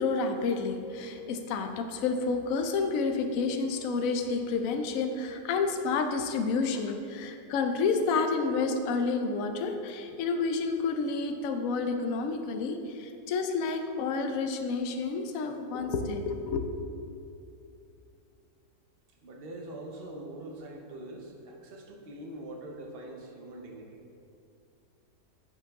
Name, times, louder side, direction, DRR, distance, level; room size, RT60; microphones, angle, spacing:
voice 1, 0.0-16.6, left 4 dB, 65° left, 6 dB, 1.0 m, -30 dB
voice 2, 19.2-24.0, right 1 dB, 45° right, 1 dB, 1.0 m, -43 dB
10.5 x 6.2 x 3.6 m, 2.6 s
omnidirectional pair, 1.7 m